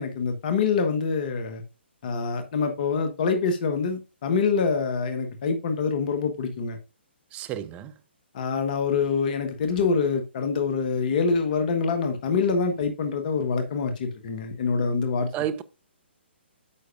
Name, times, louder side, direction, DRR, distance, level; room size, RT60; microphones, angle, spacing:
voice 1, 0.0-1.6 2.0-6.8 8.3-15.3, left 5 dB, 45° left, 1.3 m, -25 dB
voice 2, 7.3-7.9 15.3-15.6, right 10 dB, 20° right, 0.7 m, -31 dB
9.8 x 6.5 x 2.5 m
figure-of-eight pair, 135°, 6 cm